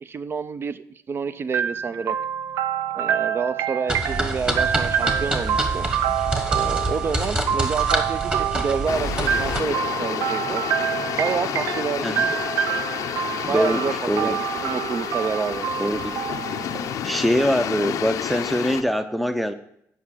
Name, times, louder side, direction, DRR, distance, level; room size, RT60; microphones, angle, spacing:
voice 1, 0.0-2.2 2.9-5.9 6.5-10.6 11.2-12.4 13.5-13.9 14.2-15.8, right 5 dB, 40° right, 14 dB, 0.6 m, -28 dB
sound 1, 1.5-17.3, right 9 dB, 85° right, 0.4 m, -27 dB
sound 2, 3.9-9.6, right 1 dB, 20° right, 1.6 m, -27 dB
sound 3, 8.9-18.8, left 9 dB, 75° left, 0.6 m, -30 dB
voice 2, 13.4-13.8 14.1-14.4 15.8-16.2 17.0-19.5, equal, ahead, 10 dB, 0.6 m, -23 dB
8.3 x 5.6 x 7.3 m, 0.74 s
cardioid pair, 100°, 6 cm